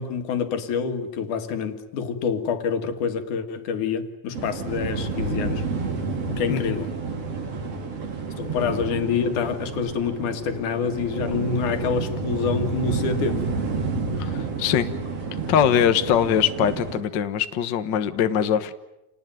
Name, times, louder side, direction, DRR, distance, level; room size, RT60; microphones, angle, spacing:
voice 1, 0.0-5.6 6.3-6.9 8.4-13.5, left 6 dB, 65° left, 3.1 m, -27 dB
sound 1, 4.3-17.0, right 4 dB, 45° right, 4.0 m, -30 dB
voice 2, 14.2-14.9 15.5-18.7, left 9 dB, 90° left, 0.9 m, -22 dB
28.5 x 19.5 x 9.3 m
omnidirectional pair, 4.0 m